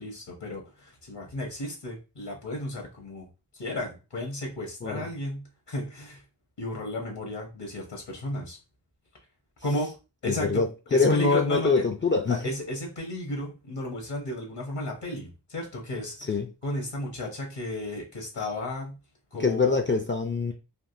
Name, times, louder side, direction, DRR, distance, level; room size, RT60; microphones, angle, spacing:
voice 1, 0.0-3.3 3.5-6.2 6.6-8.6 9.6-9.9 10.2-11.8 12.3-16.4 16.6-19.0 19.3-19.8, left 1 dB, 70° left, 1.1 m, -33 dB
voice 2, 10.3-12.5 16.3-16.5 19.4-20.5, left 4 dB, 30° left, 0.3 m, -24 dB
3.4 x 2.5 x 2.5 m
wide cardioid pair, 80°, 43 cm